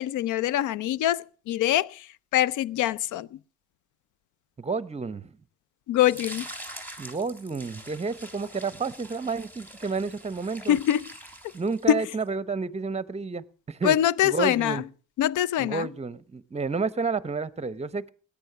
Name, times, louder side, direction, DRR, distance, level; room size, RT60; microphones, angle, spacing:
voice 1, 0.0-2.0 2.3-3.3 5.9-6.4 10.7-11.0 11.9-12.0 13.8-14.8 15.2-15.9, left 12 dB, 80° left, 0.6 m, -24 dB
voice 2, 4.6-5.4 7.0-10.8 11.5-14.0 14.2-14.8 15.6-18.1, right 4 dB, 20° right, 0.8 m, -30 dB
sound 1, 6.0-12.1, equal, 5° left, 3.2 m, -44 dB
17.5 x 10.0 x 5.8 m
cardioid pair, 90°, 30 cm